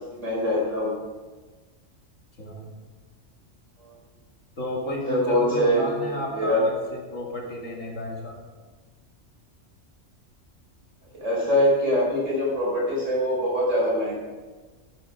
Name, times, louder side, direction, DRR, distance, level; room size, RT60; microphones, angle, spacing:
voice 1, 0.1-0.9 3.8-3.9 5.1-5.8 6.1-6.7 11.1-14.1, equal, 75° right, -5 dB, 5.6 m, -23 dB
voice 2, 2.4-2.7 4.6-8.3, left 1 dB, 80° left, -1 dB, 2.7 m, -32 dB
13.5 x 10.5 x 5.0 m, 1.3 s
omnidirectional pair, 1.3 m